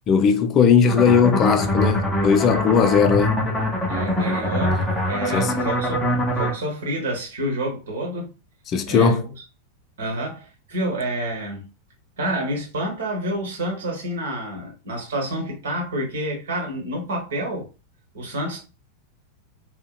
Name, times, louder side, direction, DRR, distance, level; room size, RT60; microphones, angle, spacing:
voice 1, 0.1-3.4 5.3-5.5 8.7-9.2, left 6 dB, 30° left, 0.3 m, -18 dB
sound 1, 0.9-6.5, left 1 dB, 10° left, 0.7 m, -23 dB
voice 2, 3.9-8.3 8.9-9.3 10.0-11.7 12.2-17.7 18.1-18.6, right 1 dB, 60° right, 1.0 m, -28 dB
2.7 x 2.1 x 2.2 m
figure-of-eight pair, 90°, 0 cm